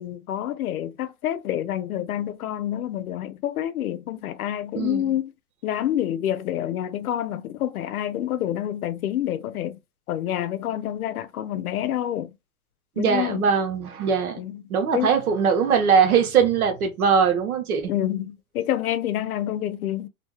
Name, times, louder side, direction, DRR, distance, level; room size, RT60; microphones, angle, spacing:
voice 1, 0.0-5.3 5.6-9.8 10.1-12.3 13.0-13.4 14.4-14.6 14.9-15.1 17.9-20.1, left 11 dB, 90° left, 0.6 m, -28 dB
voice 2, 13.0-17.9, right 6 dB, 85° right, 1.0 m, -21 dB
2.7 x 2.2 x 3.1 m
hypercardioid pair, 130°, 42 cm